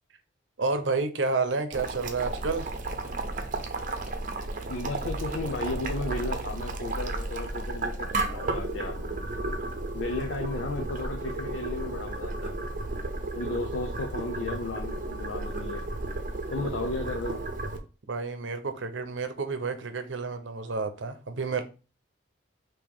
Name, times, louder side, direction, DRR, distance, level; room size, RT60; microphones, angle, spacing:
voice 1, 0.6-2.7 18.1-21.6, right 4 dB, 80° right, 0.7 m, -30 dB
Boiling, 1.7-17.8, right 2 dB, 45° right, 0.7 m, -33 dB
voice 2, 4.7-9.2 9.9-12.7 13.3-15.8 16.5-17.4, left 2 dB, 90° left, 0.6 m, -34 dB
5.0 x 3.0 x 3.5 m
head